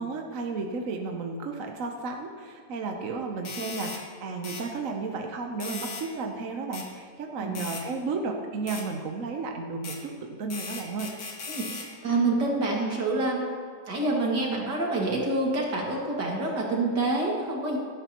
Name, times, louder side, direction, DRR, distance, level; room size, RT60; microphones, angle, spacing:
voice 1, 0.0-11.1, right 4 dB, 55° right, 3 dB, 1.2 m, -33 dB
sound 1, 3.5-4.0 4.4-4.7 5.6-6.1 6.7-6.9 7.6-7.8 8.7-8.9 9.8-10.0 10.5-11.9, left 4 dB, 80° left, 2.3 m, -37 dB
voice 2, 12.0-13.6 13.9-17.8, right 2 dB, 75° right, -2 dB, 2.9 m, -27 dB
16.5 x 12.5 x 3.0 m, 2.3 s
omnidirectional pair, 1.8 m